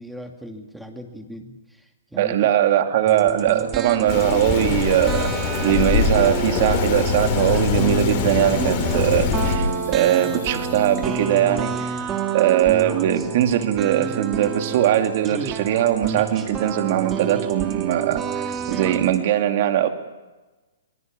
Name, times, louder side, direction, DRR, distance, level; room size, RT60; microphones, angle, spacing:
voice 1, 0.0-2.6, equal, ahead, 4 dB, 2.3 m, -39 dB
voice 2, 2.1-5.3 5.6-11.9 12.3-19.9, right 11 dB, 50° right, 6 dB, 2.6 m, -20 dB
sound 1, 3.0-19.2, right 7 dB, 25° right, 2.4 m, -29 dB
Rain, 4.1-9.6, left 7 dB, 45° left, 5.1 m, -24 dB
sound 2, 6.7-11.9, left 7 dB, 65° left, 7.9 m, -30 dB
25.5 x 19.5 x 7.5 m, 1.2 s
hypercardioid pair, 135°, 0 cm